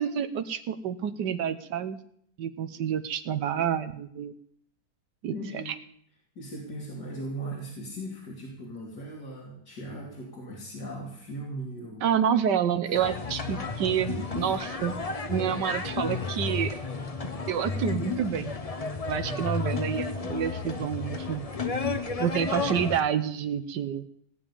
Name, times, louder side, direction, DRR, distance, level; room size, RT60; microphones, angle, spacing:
voice 1, 0.0-2.0 2.4-4.3 5.2-5.7 12.0-14.9 15.3-16.8 17.5-18.5 19.1-21.5 22.2-24.1, right 8 dB, 90° right, 10 dB, 1.5 m, -28 dB
voice 2, 5.3-5.8 6.4-12.1 12.9-13.0 14.4-14.5 19.1-19.5, right 1 dB, 75° left, -3 dB, 3.5 m, -38 dB
sound 1, 12.9-23.0, left 4 dB, 30° left, 0.7 m, -32 dB
18.0 x 7.3 x 10.0 m, 0.66 s
omnidirectional pair, 1.8 m